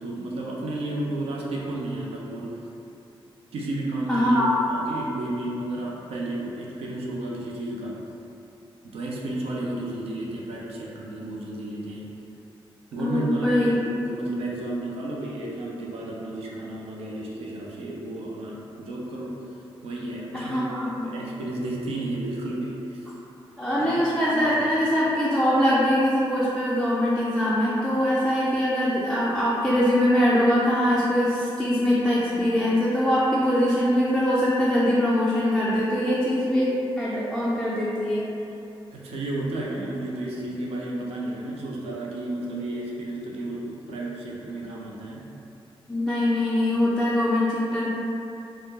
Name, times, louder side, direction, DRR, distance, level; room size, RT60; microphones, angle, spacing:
voice 1, 0.0-2.6 3.5-8.0 8.8-12.1 12.9-19.4 19.8-23.1 23.8-23.9 24.3-24.8 38.9-45.3, right 1 dB, 90° right, -3 dB, 0.4 m, -32 dB
voice 2, 4.1-4.6 13.0-13.7 20.3-21.1 23.6-38.3 45.9-47.9, left 1 dB, ahead, -9 dB, 0.3 m, -22 dB
2.1 x 2.0 x 3.2 m, 2.8 s
cardioid pair, 100°, 10 cm